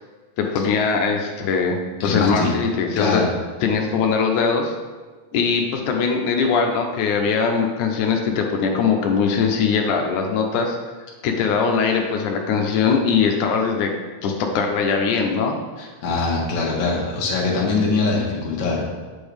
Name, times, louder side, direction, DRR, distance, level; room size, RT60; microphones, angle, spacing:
voice 1, 0.4-3.2 3.6-4.7 5.3-10.8 11.2-13.9 14.2-15.5, left 5 dB, 70° left, 2 dB, 2.1 m, -21 dB
voice 2, 2.0-2.5 3.0-3.3 15.8-18.9, left 3 dB, 50° left, -3 dB, 1.4 m, -22 dB
8.4 x 7.2 x 3.4 m, 1.4 s
omnidirectional pair, 4.1 m